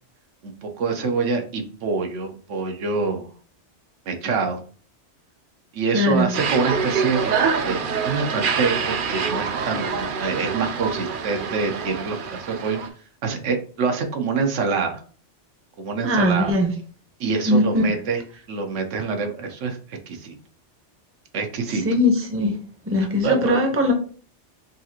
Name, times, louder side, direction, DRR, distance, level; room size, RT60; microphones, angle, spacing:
voice 1, 0.4-3.3 4.1-4.6 5.7-7.3 7.6-12.8 13.2-15.0 15.8-16.6 17.2-18.2 18.5-20.4 21.3-21.8 23.0-23.6, right 4 dB, 85° right, 4 dB, 1.1 m, -26 dB
voice 2, 5.9-6.3 16.0-16.7 17.5-17.9 21.8-22.5 22.9-23.9, left 1 dB, 15° right, 4 dB, 0.5 m, -20 dB
sound 1, 6.3-12.9, right 5 dB, 60° right, 0.6 m, -26 dB
5.4 x 2.4 x 2.8 m, 0.42 s
omnidirectional pair, 1.2 m